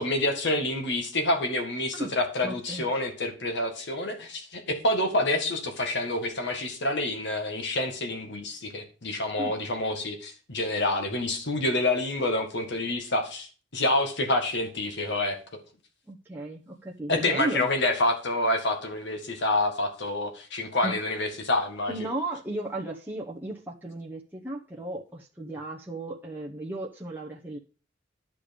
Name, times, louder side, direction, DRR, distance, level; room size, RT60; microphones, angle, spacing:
voice 1, 0.0-15.4 17.1-21.9, left 2 dB, 65° left, 5 dB, 1.9 m, -27 dB
voice 2, 2.4-2.9 9.4-9.5 16.1-17.6 20.8-20.9 21.9-27.6, right 1 dB, 10° right, -2 dB, 1.0 m, -35 dB
11.0 x 6.8 x 5.3 m, 0.37 s
head